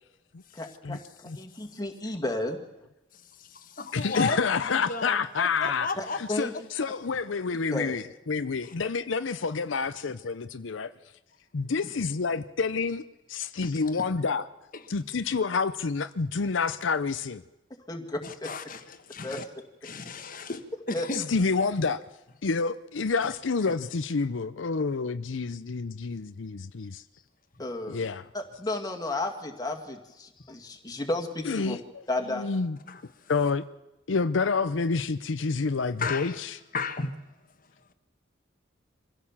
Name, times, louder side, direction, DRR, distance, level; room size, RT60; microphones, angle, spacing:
voice 1, 0.5-2.6 6.0-6.5 7.7-8.0 17.9-18.5 19.2-19.4 20.9-21.1 27.6-28.1 28.3-31.8 32.1-32.5, left 2 dB, 20° left, 2.1 m, -33 dB
voice 2, 3.4-6.2 8.6-8.7 11.8-11.9 13.6-14.0 14.7-14.8 18.2-19.4 19.8-21.3 23.2-23.3 23.6-23.7 32.9-33.0 36.0-36.4 36.7-37.2, left 4 dB, 45° left, 1.4 m, -34 dB
voice 3, 3.9-5.9 6.1-10.9 11.5-13.0 13.3-14.5 14.9-17.4 21.1-22.0 22.4-27.0 27.9-28.2 31.4-32.8 33.3-33.7 34.1-36.5, left 4 dB, 85° left, 0.6 m, -28 dB
24.5 x 15.5 x 7.3 m
head